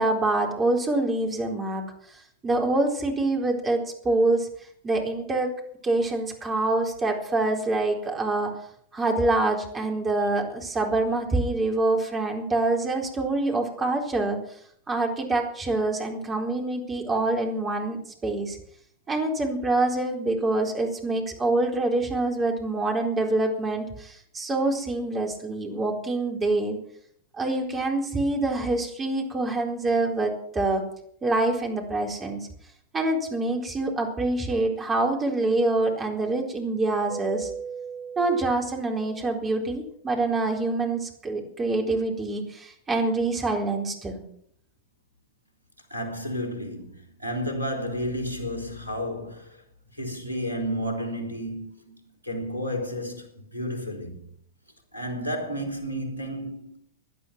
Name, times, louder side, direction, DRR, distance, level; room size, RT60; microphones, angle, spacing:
voice 1, 0.0-1.8 2.1-4.5 4.8-5.5 5.8-8.5 8.9-14.4 14.9-18.0 18.2-18.6 19.1-26.8 27.3-30.8 31.2-32.5 32.9-37.5 38.2-44.2, right 2 dB, 20° right, 4.1 m, -26 dB
Keyboard (musical), 37.1-39.6, right 6 dB, 75° left, 6.6 m, -38 dB
voice 2, 45.9-49.6 49.9-52.0 52.2-54.3 54.9-56.8, equal, 85° right, 3.5 m, -32 dB
17.5 x 11.0 x 6.0 m
figure-of-eight pair, 90°, 0 cm